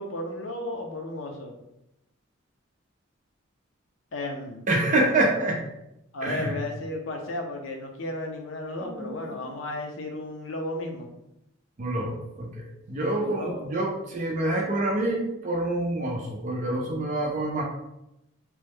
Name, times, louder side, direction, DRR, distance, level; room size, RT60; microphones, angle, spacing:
voice 1, 0.0-1.5 4.1-4.7 6.1-11.1 13.1-13.8, left 1 dB, 70° left, 2 dB, 0.6 m, -34 dB
voice 2, 4.7-5.6 6.2-6.5 8.8-9.4 11.8-17.6, right 1 dB, 40° right, -1 dB, 0.5 m, -27 dB
3.0 x 2.1 x 3.4 m, 0.88 s
head